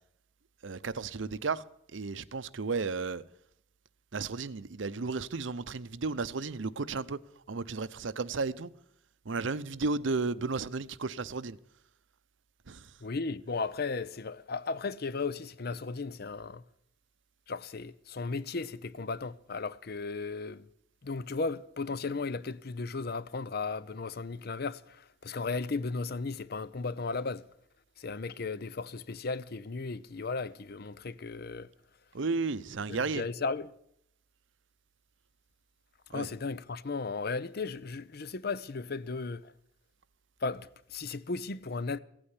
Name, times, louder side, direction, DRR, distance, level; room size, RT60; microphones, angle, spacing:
voice 1, 0.6-1.6 1.9-3.2 4.1-7.2 7.5-8.7 9.3-11.6 12.7-12.9 32.1-33.3 36.1-36.3, right 4 dB, 80° right, 0.7 m, -33 dB
voice 2, 13.0-16.6 17.5-20.6 21.0-27.5 28.0-31.7 32.9-33.7 36.1-39.5 40.4-42.0, left 4 dB, 55° left, 0.7 m, -35 dB
16.0 x 8.8 x 9.7 m
head